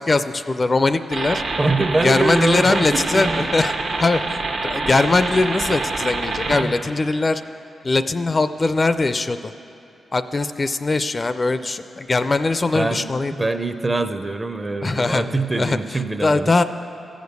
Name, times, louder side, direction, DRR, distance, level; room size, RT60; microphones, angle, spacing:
voice 1, 0.0-1.4 2.0-3.7 4.0-7.4 7.8-9.5 10.1-13.3 14.8-15.8 16.2-16.6, left 3 dB, 35° left, 11 dB, 0.4 m, -21 dB
sound 1, 1.1-6.6, right 3 dB, 70° right, 1.1 m, -26 dB
voice 2, 1.6-3.6 6.5-6.8 12.7-13.0 13.4-16.5, right 2 dB, 25° right, 9 dB, 0.6 m, -23 dB
14.0 x 5.1 x 8.0 m, 2.7 s
cardioid pair, 70°, 0 cm